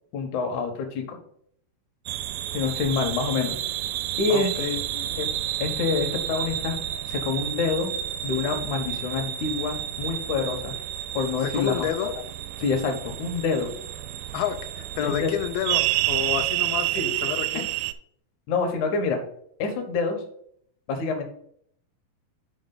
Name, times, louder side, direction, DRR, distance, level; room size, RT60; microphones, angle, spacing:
voice 1, 0.1-1.2 2.5-3.6 4.2-4.5 5.2-5.3 5.6-6.8 7.1-7.9 8.2-10.7 11.1-12.1 12.6-13.7 15.0-15.3 16.9-17.0 18.5-19.2 19.6-20.2 20.9-21.2, left 4 dB, 65° left, 4 dB, 2.4 m, -27 dB
sound 1, 2.1-17.9, right 13 dB, 85° right, 2.3 m, -30 dB
voice 2, 4.3-5.1 11.4-12.1 14.3-17.7, left 10 dB, 90° left, 6 dB, 2.4 m, -30 dB
9.9 x 4.9 x 4.0 m, 0.67 s
omnidirectional pair, 4.1 m